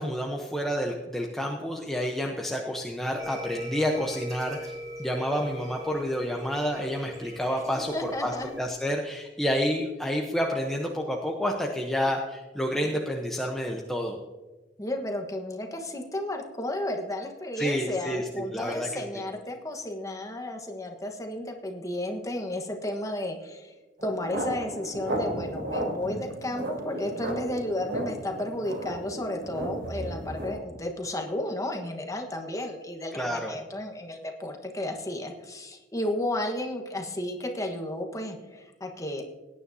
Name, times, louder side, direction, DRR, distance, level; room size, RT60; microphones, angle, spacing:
voice 1, 0.0-14.2 17.6-19.2 33.1-33.5, equal, ahead, 0 dB, 0.8 m, -29 dB
sound 1, 3.2-8.7, equal, 20° right, 3.5 m, -41 dB
voice 2, 7.7-8.5 14.8-23.7 24.0-39.2, left 1 dB, 20° left, 3 dB, 1.3 m, -33 dB
sound 2, 24.0-30.6, right 1 dB, 85° right, 3.7 m, -34 dB
17.5 x 9.8 x 2.7 m, 1.2 s
head